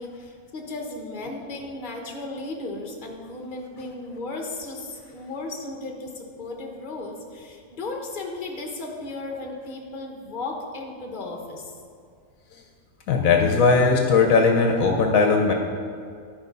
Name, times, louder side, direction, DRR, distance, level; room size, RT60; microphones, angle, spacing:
voice 1, 0.0-11.8, left 2 dB, 35° left, 1 dB, 1.2 m, -35 dB
voice 2, 13.1-15.5, left 4 dB, 75° left, 3 dB, 1.1 m, -18 dB
12.0 x 4.8 x 5.4 m, 2.2 s
omnidirectional pair, 1.5 m